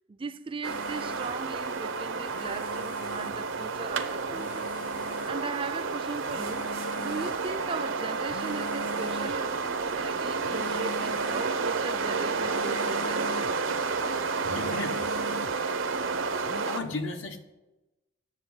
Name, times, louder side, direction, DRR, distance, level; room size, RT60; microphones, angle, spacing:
voice 1, 0.1-4.6 5.2-6.7 7.0-13.3, right 4 dB, 25° right, 0.4 m, -38 dB
sound 1, 0.6-16.8, right 4 dB, 85° right, 0.9 m, -30 dB
sound 2, 0.7-16.6, left 4 dB, 45° left, 0.5 m, -45 dB
voice 2, 14.4-15.1 16.6-17.4, left 2 dB, 85° left, 1.3 m, -35 dB
9.1 x 7.1 x 8.2 m
head